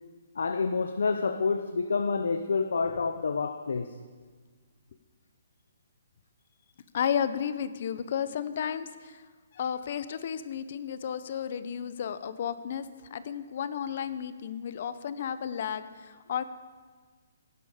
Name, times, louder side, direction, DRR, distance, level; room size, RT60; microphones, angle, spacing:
voice 1, 0.4-3.9, left 4 dB, 75° left, 9 dB, 0.7 m, -28 dB
voice 2, 6.9-9.2 9.5-16.4, left 8 dB, 40° left, 13 dB, 0.6 m, -33 dB
15.5 x 11.0 x 4.9 m, 1.5 s
hypercardioid pair, 180°, 0 cm